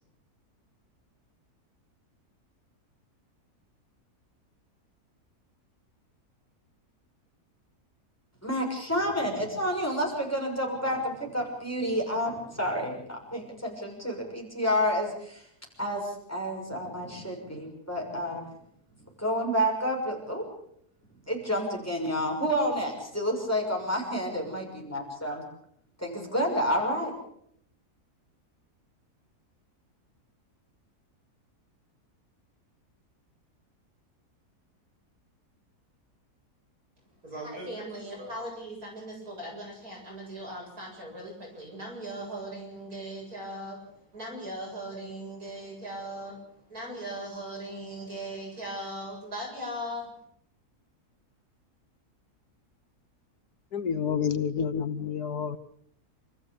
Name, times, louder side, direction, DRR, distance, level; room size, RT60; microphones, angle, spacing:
voice 1, 8.4-15.5 15.8-18.4 19.2-20.4 21.3-25.4 26.0-27.1, equal, 10° left, 6.4 m, -29 dB
voice 2, 37.2-46.4 46.7-50.1, right 1 dB, 65° right, 8.4 m, -39 dB
voice 3, 53.7-55.6, left 7 dB, 80° left, 1.7 m, -29 dB
28.0 x 14.5 x 8.4 m
omnidirectional pair, 1.7 m